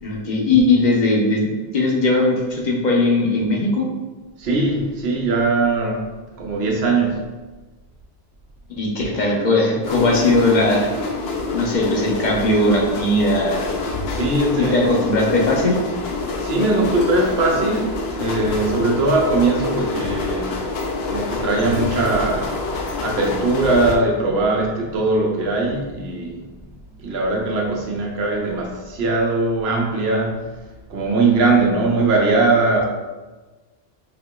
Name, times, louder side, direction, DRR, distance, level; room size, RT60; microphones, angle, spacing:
voice 1, 0.0-3.9 8.8-10.9 11.5-13.6 14.6-15.8, left 2 dB, 50° left, -2 dB, 0.7 m, -19 dB
voice 2, 4.4-6.1 6.4-7.3 14.1-14.9 16.4-20.6 21.1-22.7 23.0-26.4 27.0-30.4 30.9-32.9, right 3 dB, 85° right, 0 dB, 0.9 m, -20 dB
sound 1, 9.8-24.0, left 3 dB, 80° left, 0.8 m, -26 dB
5.0 x 2.8 x 2.2 m, 1.2 s
omnidirectional pair, 1.0 m